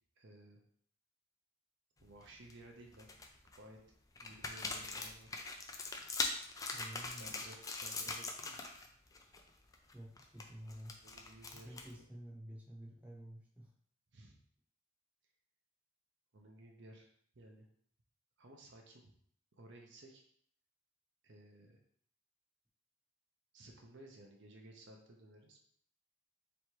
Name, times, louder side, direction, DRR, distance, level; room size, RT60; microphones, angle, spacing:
voice 1, 0.2-0.6 2.0-3.2 3.6-3.8 4.2-5.4 7.2-8.7 11.0-12.1 14.1-14.4 16.3-17.1 17.3-17.7 18.4-19.1 19.5-20.2 21.2-21.8 23.5-25.6, right 1 dB, 55° right, 1 dB, 0.7 m, -57 dB
sound 1, 2.0-2.5 2.9-3.6 4.1-8.9 9.1-9.4 9.7-12.0, left 3 dB, 15° left, 0.4 m, -42 dB
voice 2, 6.7-7.3 9.9-10.9 11.6-13.7, equal, 5° right, -4 dB, 0.9 m, -50 dB
3.4 x 3.1 x 4.5 m, 0.63 s
head